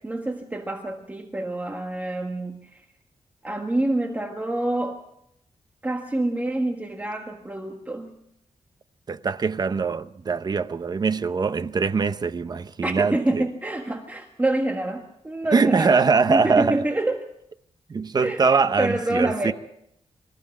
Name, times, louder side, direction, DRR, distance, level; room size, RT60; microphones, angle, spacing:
voice 1, 0.0-2.8 3.4-5.0 5.8-8.2 12.8-17.3 18.2-19.5, right 1 dB, 15° right, 1.5 m, -27 dB
voice 2, 9.1-13.4 15.5-16.8 17.9-19.5, right 5 dB, 35° right, 0.7 m, -22 dB
25.0 x 14.5 x 7.4 m
wide cardioid pair, 175°, 12 cm